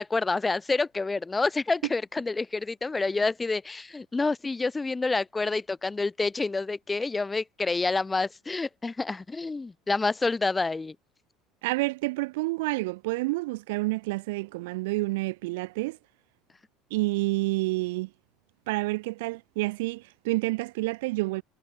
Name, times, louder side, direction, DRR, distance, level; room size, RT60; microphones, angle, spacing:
voice 1, 0.0-11.0, left 3 dB, 15° left, 8.0 m, -28 dB
voice 2, 11.6-16.0 16.9-18.1 18.7-21.4, right 22 dB, 70° right, 6.8 m, -29 dB
hypercardioid pair, 75°, 0 cm